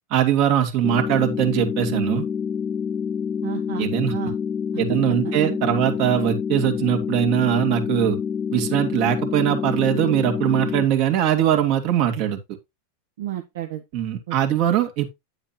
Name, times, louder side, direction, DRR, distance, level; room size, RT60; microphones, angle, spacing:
voice 1, 0.1-2.3 3.8-4.1 4.8-8.2 8.5-12.4 13.9-15.1, right 10 dB, 50° right, 2.4 m, -21 dB
sound 1, 0.8-10.8, left 7 dB, 15° left, 0.6 m, -27 dB
voice 2, 3.4-4.3 4.9-5.0 5.2-5.6 13.2-13.8 14.3-14.4, right 13 dB, 80° right, 1.6 m, -32 dB
10.5 x 7.5 x 2.9 m
supercardioid pair, 140°, 0 cm